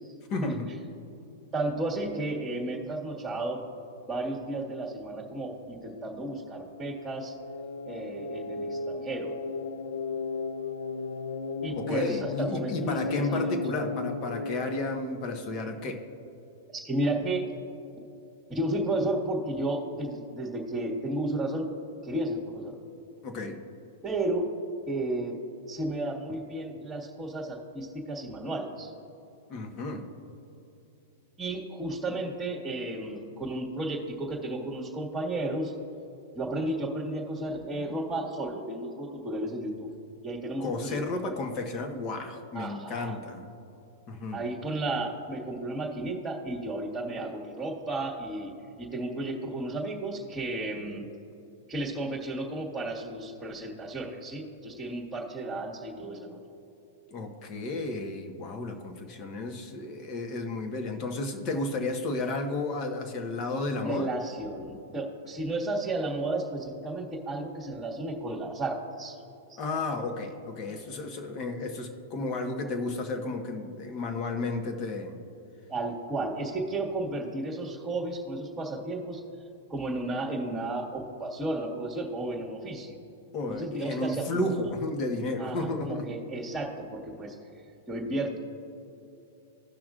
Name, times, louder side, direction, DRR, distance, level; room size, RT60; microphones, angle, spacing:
voice 1, 0.3-0.7 11.7-16.0 23.2-23.6 29.5-30.1 40.6-43.5 44.1-44.4 57.1-64.1 69.6-75.1 83.3-86.1, left 2 dB, 40° left, 4 dB, 1.3 m, -32 dB
voice 2, 1.5-3.6 4.1-7.3 7.9-9.3 11.6-13.6 16.7-17.5 18.5-21.7 22.0-22.7 24.0-24.4 24.9-25.4 25.7-28.9 31.4-35.7 36.3-39.9 40.2-41.3 42.5-43.2 44.3-48.5 48.8-51.1 51.7-56.4 63.8-69.1 69.5-69.6 75.7-79.2 79.7-83.0 83.5-84.3 84.5-84.7 85.4-87.3 87.9-88.4, right 2 dB, 15° right, -4 dB, 1.6 m, -33 dB
sound 1, 5.5-15.0, left 4 dB, 80° left, 0.5 m, -35 dB
17.0 x 6.0 x 2.5 m, 2.9 s
hypercardioid pair, 105°, 0 cm